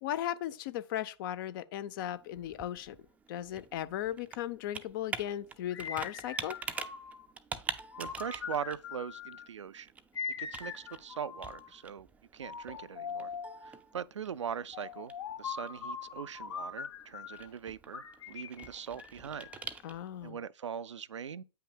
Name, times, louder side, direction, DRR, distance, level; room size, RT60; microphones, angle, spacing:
voice 1, 0.0-3.0 3.3-6.6 19.8-20.4, left 12 dB, 50° left, 0.6 m, -37 dB
Computer keyboard, 2.0-20.3, right 5 dB, 10° right, 0.5 m, -46 dB
sound 1, 5.7-7.3 7.9-9.5 10.1-11.8 12.4-13.6 14.7-17.5 17.9-19.7, left 6 dB, 65° left, 1.0 m, -42 dB
voice 2, 8.0-9.9 10.4-12.1 12.3-13.3 13.6-19.5 20.2-21.4, right 7 dB, 85° right, 0.5 m, -41 dB
8.4 x 5.7 x 2.2 m
hypercardioid pair, 120°, 15 cm